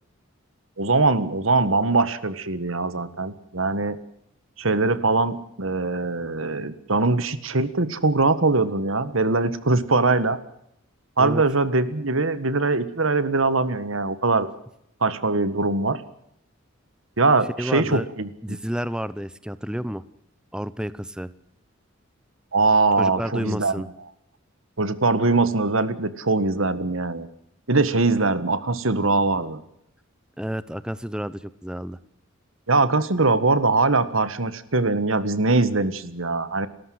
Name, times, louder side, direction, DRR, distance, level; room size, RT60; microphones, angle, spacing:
voice 1, 0.8-4.0 4.6-10.4 11.2-14.5 15.0-16.0 17.2-18.6 22.5-23.7 24.8-27.3 27.7-29.6 32.7-36.7, right 3 dB, 75° right, 14 dB, 1.7 m, -22 dB
voice 2, 17.6-18.1 18.4-20.0 20.5-21.3 23.0-23.9 30.4-32.0, equal, 5° right, 16 dB, 0.8 m, -30 dB
29.5 x 14.0 x 7.8 m, 0.77 s
head